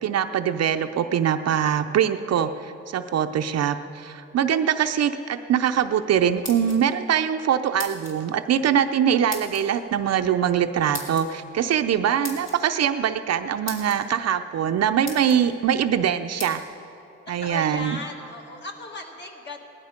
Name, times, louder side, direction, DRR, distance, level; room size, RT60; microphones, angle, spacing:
voice 1, 0.0-16.6 17.3-18.0, right 9 dB, 55° right, 8 dB, 0.6 m, -23 dB
sound 1, 6.2-7.1 7.8-8.2 9.3-9.6 10.9-11.3 12.2-12.6 13.3-13.4 13.7-14.0 14.6-14.7 15.0-15.4 16.4-16.5, left 2 dB, 60° left, 2.8 m, -36 dB
voice 2, 17.4-19.6, left 2 dB, 35° left, 1 dB, 2.1 m, -37 dB
18.5 x 12.0 x 5.2 m, 2.8 s
cardioid pair, 90°, 30 cm